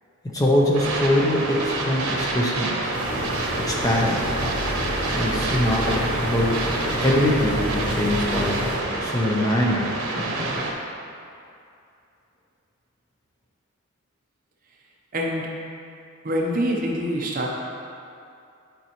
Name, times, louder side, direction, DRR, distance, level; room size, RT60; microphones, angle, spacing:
voice 1, 0.3-2.9 3.6-4.3 5.1-8.7 9.0-10.6, left 1 dB, 15° left, -3 dB, 0.6 m, -23 dB
sound 1, 0.7-10.7, right 2 dB, 90° right, 0.8 m, -28 dB
sound 2, 2.9-8.8, equal, 20° right, 1.5 m, -29 dB
voice 2, 15.1-15.5 16.2-17.5, equal, 40° right, -1 dB, 0.7 m, -25 dB
9.8 x 4.5 x 2.9 m, 2.6 s
head